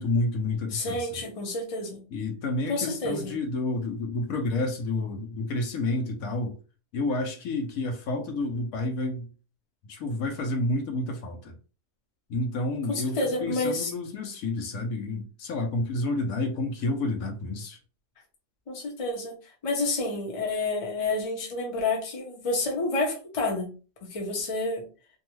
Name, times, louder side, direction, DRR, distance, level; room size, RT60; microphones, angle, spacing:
voice 1, 0.0-1.2 2.1-6.6 6.9-9.3 9.8-11.5 12.3-17.8, left 2 dB, 75° left, 1.0 m, -30 dB
voice 2, 0.7-2.0 2.7-3.4 12.9-13.9 18.7-19.4 19.6-23.7 24.0-24.9, left 2 dB, 30° left, 0.7 m, -29 dB
2.6 x 2.3 x 3.0 m
omnidirectional pair, 1.5 m